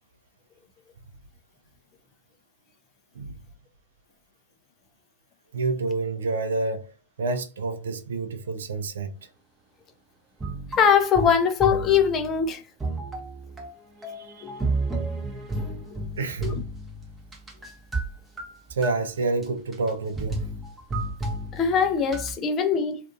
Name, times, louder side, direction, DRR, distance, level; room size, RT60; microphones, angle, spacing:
voice 1, 5.5-6.9 7.2-9.1 14.2-14.5 16.2-16.6 18.8-20.4, right 3 dB, 75° right, 0.4 m, -28 dB
sound 1, 10.4-12.5 12.8-18.1 18.4-18.9 19.4-19.5 19.7-19.9 20.2-22.4, right 2 dB, 15° right, 0.7 m, -32 dB
voice 2, 10.8-12.6 14.4-14.6 15.9-16.0 16.4-16.6 21.5-23.0, left 7 dB, 30° left, 0.4 m, -22 dB
2.5 x 2.4 x 2.4 m
hypercardioid pair, 100°, 0 cm